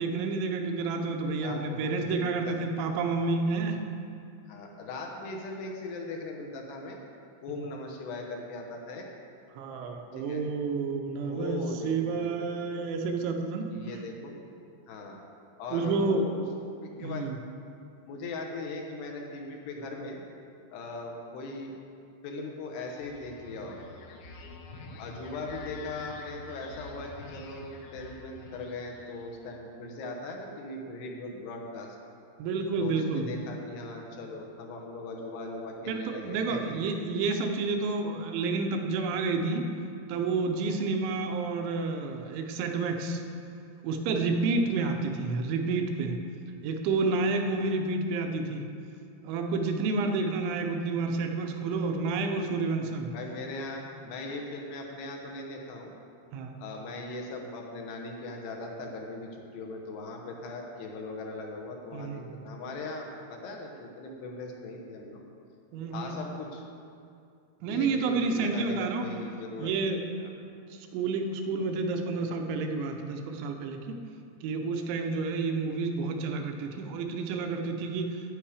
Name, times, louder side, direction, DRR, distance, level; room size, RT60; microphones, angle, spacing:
voice 1, 0.0-3.8 9.5-13.7 15.7-16.2 17.0-17.4 32.4-33.3 35.9-39.7 40.1-43.2 43.8-46.2 46.6-48.6 49.2-53.1 56.3-56.6 61.9-62.4 65.7-66.2 67.6-69.0 69.6-70.0 70.7-74.0 74.4-78.3, right 3 dB, 85° right, 4 dB, 3.2 m, -30 dB
voice 2, 1.4-3.0 4.5-7.0 7.4-9.1 10.1-10.4 11.2-12.3 13.7-14.3 14.9-15.2 15.6-16.4 16.8-17.3 18.1-20.2 20.7-21.7 22.2-23.9 25.0-32.0 32.8-36.9 44.8-45.0 53.1-55.9 56.6-65.2 65.9-66.6 67.7-70.3, left 2 dB, 75° left, 1 dB, 2.9 m, -39 dB
sound 1, 22.7-29.4, left 3 dB, 90° left, 3.5 m, -47 dB
11.5 x 9.6 x 5.0 m, 2.4 s
omnidirectional pair, 5.3 m